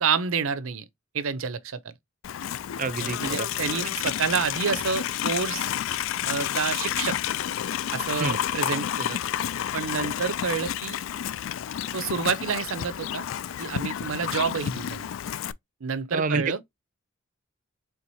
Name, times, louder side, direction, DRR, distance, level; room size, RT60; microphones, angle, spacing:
voice 1, 0.0-0.8 1.1-1.9 3.0-5.7 6.2-7.2 7.9-9.2 9.7-11.0 11.9-13.3 13.6-15.1 15.8-16.6, right 6 dB, 80° right, 0.6 m, -28 dB
Livestock farm animals working animals, 2.2-15.5, left 10 dB, 70° left, 0.3 m, -30 dB
voice 2, 2.8-3.5 8.2-8.4 16.1-16.6, right 4 dB, 40° right, 0.5 m, -28 dB
4.6 x 3.8 x 2.7 m
head